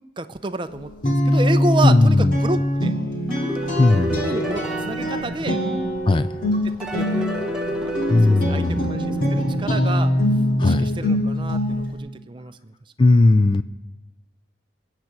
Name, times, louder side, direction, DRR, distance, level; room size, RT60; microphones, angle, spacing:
voice 1, 0.2-2.9 4.2-5.6 6.8-7.9 8.3-10.1 10.6-12.6, right 2 dB, 25° right, 9 dB, 0.6 m, -30 dB
Guitar, 0.7-11.9, equal, 50° left, 2.3 m, -23 dB
voice 2, 1.8-2.4 3.8-4.3 6.1-6.3 8.1-9.0 10.6-10.9 13.0-13.6, left 2 dB, 25° left, 14 dB, 0.4 m, -17 dB
sound 1, 3.3-6.1 6.8-9.6, equal, 5° right, 1.3 m, -30 dB
21.0 x 8.3 x 6.0 m, 1.1 s
head